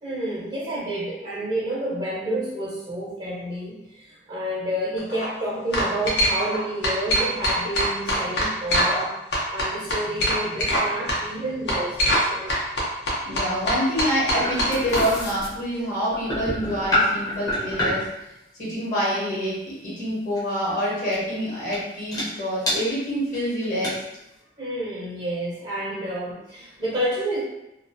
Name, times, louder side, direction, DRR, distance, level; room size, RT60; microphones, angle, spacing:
voice 1, 0.0-9.1 9.5-12.6 24.6-27.4, right 1 dB, 30° right, -9 dB, 0.5 m, -29 dB
sound 1, 5.0-5.3 5.7-6.6 6.8-9.0 9.3-10.8 11.1-11.2 11.7-12.2 12.5-15.0, equal, 65° left, 0.6 m, -23 dB
voice 2, 13.2-18.0 18.6-23.9, equal, 45° left, -7 dB, 0.9 m, -26 dB
sound 2, 13.5-18.1 20.4-20.6 21.1-21.3 21.7-21.8 22.1-22.2 22.7-22.8 23.3-23.4 23.6-23.9, left 1 dB, 20° left, 0.6 m, -27 dB
2.4 x 2.1 x 2.5 m, 0.90 s
head